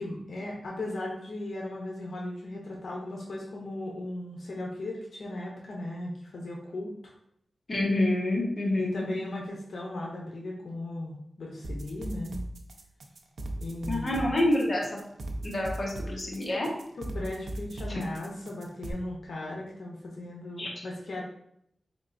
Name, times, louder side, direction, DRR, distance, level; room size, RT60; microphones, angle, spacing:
voice 1, 0.0-7.1 8.8-12.4 13.6-14.4 17.0-21.2, left 1 dB, 75° left, -2 dB, 0.7 m, -37 dB
voice 2, 7.7-9.1 13.9-14.9 15.4-16.7 17.9-18.0 20.6-20.7, left 1 dB, 40° left, -3 dB, 1.0 m, -27 dB
sound 1, 11.6-18.9, right 1 dB, 80° right, 0.5 m, -37 dB
4.2 x 3.5 x 2.5 m, 0.72 s
wide cardioid pair, 125°, 0 cm